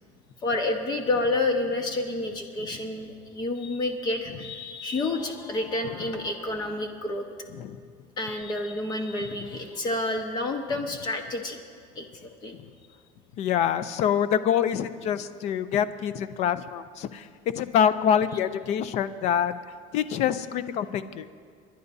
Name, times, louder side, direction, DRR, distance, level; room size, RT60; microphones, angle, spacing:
voice 1, 0.4-7.2 8.2-11.6 11.9-12.0 12.4-12.5, left 2 dB, 25° left, 4 dB, 1.1 m, -29 dB
voice 2, 13.4-17.3 17.5-19.5 19.9-21.3, left 8 dB, 45° left, 13 dB, 0.5 m, -26 dB
29.0 x 11.0 x 2.7 m, 2.1 s
cardioid pair, 170°, 16 cm